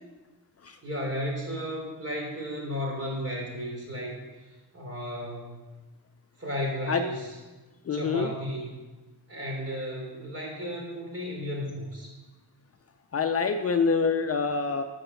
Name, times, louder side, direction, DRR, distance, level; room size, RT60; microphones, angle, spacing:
voice 1, 0.8-4.2 4.7-5.6 6.4-7.3 7.9-8.8 9.3-12.1, equal, 35° right, -1 dB, 3.6 m, -34 dB
voice 2, 7.9-8.3 13.1-14.8, left 5 dB, 35° left, 7 dB, 0.6 m, -26 dB
9.7 x 6.6 x 5.6 m, 1.2 s
cardioid pair, 95°, 40 cm